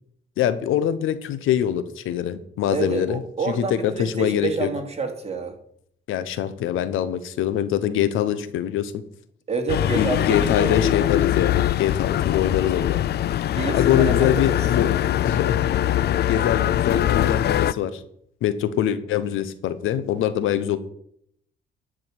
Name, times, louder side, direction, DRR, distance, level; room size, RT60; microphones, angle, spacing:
voice 1, 0.4-3.2 3.5-4.7 6.1-8.9 10.0-13.0 13.7-14.9 15.2-18.0 18.4-20.8, left 10 dB, 85° left, 13 dB, 0.9 m, -24 dB
voice 2, 2.7-5.5 9.5-11.1 13.5-14.6, right 4 dB, 30° right, 3 dB, 2.6 m, -28 dB
sound 1, 9.7-17.7, left 12 dB, 55° left, 0.4 m, -22 dB
11.5 x 5.1 x 8.0 m, 0.68 s
cardioid pair, 90°, 20 cm